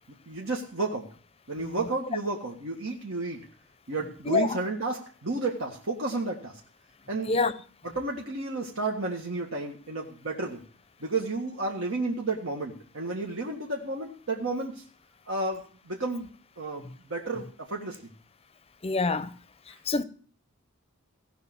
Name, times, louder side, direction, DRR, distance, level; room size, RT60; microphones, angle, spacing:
voice 1, 0.3-1.1 1.5-3.5 3.9-6.6 7.1-7.3 7.8-10.6 11.0-14.8 15.3-16.3 16.6-18.0, right 3 dB, 65° right, 1.8 m, -32 dB
voice 2, 4.3-4.6 7.3-7.5 18.8-19.3 19.9-20.0, left 3 dB, 25° left, 0.6 m, -26 dB
17.0 x 5.8 x 7.8 m
head